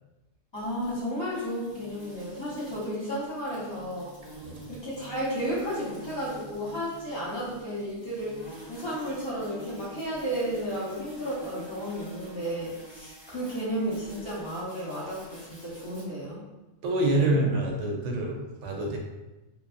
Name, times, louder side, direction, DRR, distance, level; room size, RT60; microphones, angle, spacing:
voice 1, 0.5-4.1 4.7-8.4 8.7-16.4 17.0-17.4, equal, 25° left, -8 dB, 0.9 m, -33 dB
sound 1, 0.6-16.0, right 2 dB, 10° right, 0.6 m, -47 dB
voice 2, 16.8-19.0, right 1 dB, 70° right, 0 dB, 0.9 m, -26 dB
2.7 x 2.3 x 2.5 m, 1.0 s
omnidirectional pair, 1.4 m